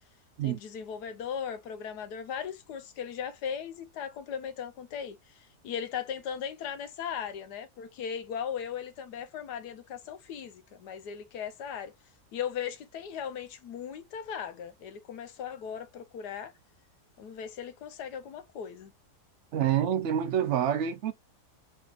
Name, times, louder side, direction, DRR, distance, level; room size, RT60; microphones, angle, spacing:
voice 1, 0.4-11.9 12.3-16.5 17.2-18.9, left 8 dB, 80° left, 1.3 m, -38 dB
voice 2, 19.5-21.1, right 9 dB, 70° right, 0.6 m, -27 dB
4.2 x 3.5 x 2.4 m
omnidirectional pair, 1.7 m